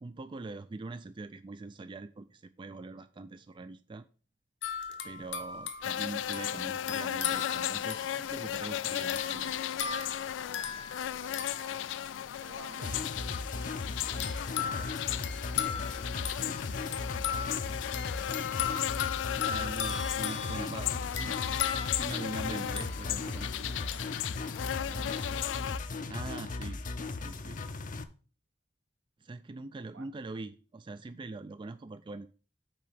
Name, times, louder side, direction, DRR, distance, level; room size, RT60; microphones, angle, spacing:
voice 1, 0.0-4.0 5.0-9.5 18.8-19.1 19.4-20.9 21.2-21.4 22.0-24.0 24.9-25.1 26.1-26.8 27.2-27.6 29.2-32.3, right 3 dB, 25° right, 11 dB, 0.3 m, -43 dB
sound 1, 4.6-12.5 14.2-23.4 23.9-24.1, left 8 dB, 70° left, 0.9 m, -38 dB
sound 2, 5.8-25.8, left 11 dB, 85° left, 0.3 m, -36 dB
voice 2, 11.2-12.0 12.3-14.9 15.5-17.1 17.6-18.3 22.5-22.8 24.8-25.4 29.9-30.0, right 2 dB, 85° right, 6 dB, 1.3 m, -53 dB
sound 3, 12.8-28.0, left 3 dB, 45° left, 0.6 m, -37 dB
6.1 x 4.6 x 6.1 m, 0.37 s
head